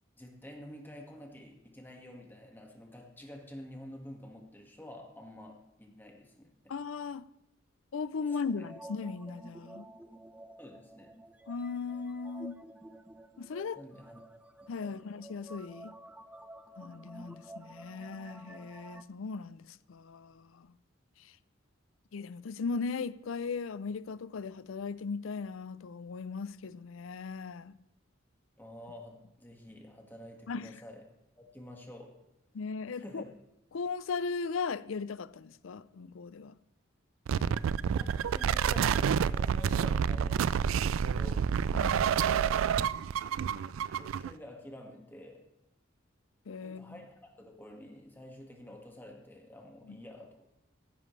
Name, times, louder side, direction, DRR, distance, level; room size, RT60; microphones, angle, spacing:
voice 1, 0.2-6.5 10.6-11.1 13.8-14.2 14.6-15.1 28.6-31.0 31.4-32.1 32.9-33.2 37.9-41.5 43.9-45.4 46.6-50.5, left 1 dB, 10° left, 1.7 m, -49 dB
voice 2, 6.7-7.3 7.9-9.9 11.5-12.6 13.4-13.8 14.7-15.9 16.8-20.7 21.2-21.3 22.1-27.8 30.5-30.7 32.5-33.2 33.7-36.6 37.3-37.8 41.7-42.2 46.5-47.0 49.9-50.0, left 5 dB, 85° left, 0.5 m, -38 dB
sound 1, 8.1-19.0, right 1 dB, 5° right, 0.4 m, -51 dB
sound 2, 37.3-44.3, right 7 dB, 90° right, 0.3 m, -28 dB
15.0 x 11.0 x 3.2 m
head